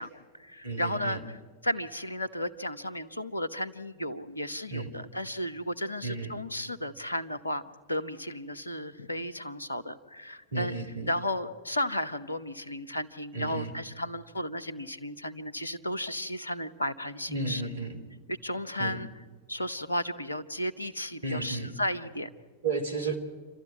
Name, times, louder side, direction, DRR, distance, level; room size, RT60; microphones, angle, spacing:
voice 1, 0.0-10.8 11.1-17.6 18.3-19.1 19.5-22.3, left 1 dB, 80° left, 14 dB, 0.9 m, -34 dB
voice 2, 0.6-1.2 4.7-4.9 6.0-6.3 10.5-11.1 13.3-13.7 17.3-18.0 18.8-19.0 21.2-21.8 22.6-23.2, right 3 dB, 75° right, 6 dB, 3.0 m, -33 dB
28.5 x 13.0 x 9.5 m, 1.5 s
figure-of-eight pair, 90°, 0 cm